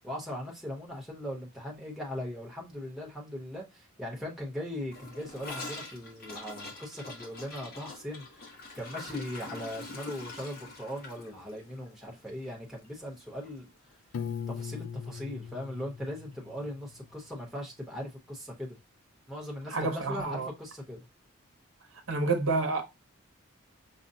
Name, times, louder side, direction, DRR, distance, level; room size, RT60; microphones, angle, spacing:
voice 1, 0.0-14.0 14.5-18.8 19.3-21.0, left 1 dB, ahead, 0.9 m, -39 dB
Gurgling / Toilet flush, 4.9-13.2 13.4-13.6 13.9-14.3 14.6-14.7 15.0-15.1 16.0-16.1, left 2 dB, 45° left, 1.0 m, -44 dB
Piano, 14.1-17.1, left 7 dB, 70° left, 0.3 m, -40 dB
voice 2, 19.7-20.5 22.1-22.8, right 3 dB, 75° right, 0.8 m, -29 dB
5.4 x 2.1 x 2.6 m
head